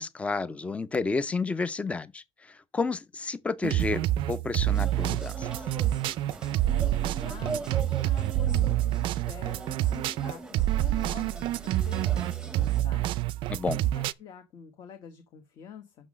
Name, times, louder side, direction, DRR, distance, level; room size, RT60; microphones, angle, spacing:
voice 1, 0.0-2.2 2.7-5.5 13.5-13.8, left 4 dB, 10° left, 0.4 m, -30 dB
sound 1, 3.6-14.1, right 14 dB, 50° right, 0.4 m, -27 dB
sound 2, 4.7-12.8, right 3 dB, 5° right, 0.8 m, -41 dB
voice 2, 6.7-13.1 13.9-16.1, left 8 dB, 40° left, 1.0 m, -47 dB
6.2 x 5.9 x 6.2 m
cardioid pair, 160°, 11 cm